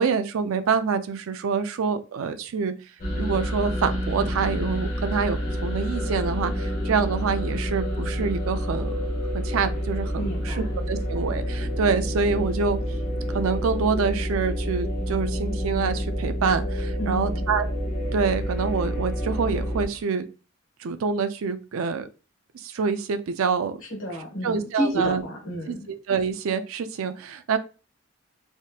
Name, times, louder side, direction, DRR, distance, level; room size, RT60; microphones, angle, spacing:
voice 1, 0.0-2.7 3.1-9.0 9.3-10.5 10.9-12.8 13.3-17.7 18.1-20.3 20.8-22.1 22.6-23.8 24.4-25.2 26.1-27.6, right 5 dB, 80° right, 10 dB, 0.4 m, -26 dB
sound 1, 3.0-19.9, equal, 40° left, 1.0 m, -28 dB
voice 2, 10.2-10.8 17.0-17.5 23.9-25.9, equal, 75° left, 1 dB, 1.4 m, -31 dB
3.5 x 2.8 x 2.3 m, 0.33 s
head